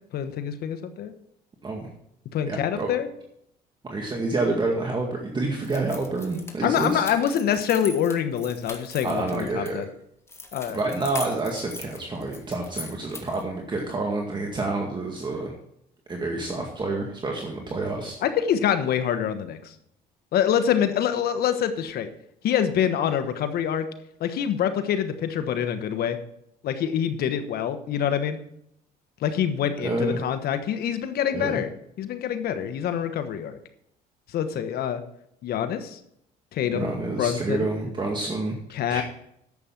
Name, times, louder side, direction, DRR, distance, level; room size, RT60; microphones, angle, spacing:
voice 1, 0.1-1.1 2.3-3.1 6.6-9.9 10.5-10.8 18.2-19.7 20.3-22.1 22.4-23.8 24.2-26.2 26.6-28.4 29.2-31.7 32.0-33.6 34.3-35.0 35.4-36.0 36.5-36.9 37.2-37.7 38.7-39.0, left 9 dB, 65° left, 9 dB, 1.2 m, -25 dB
voice 2, 2.5-2.9 3.8-7.1 9.0-9.8 10.7-15.5 16.1-18.2 29.8-30.2 31.3-31.6 36.7-38.5 38.9-39.0, right 2 dB, 25° right, 1 dB, 1.9 m, -28 dB
sound 1, 5.6-9.7 10.3-13.5, left 2 dB, 15° left, 1.9 m, -40 dB
11.0 x 7.9 x 5.9 m, 0.74 s
cardioid pair, 110°, 17 cm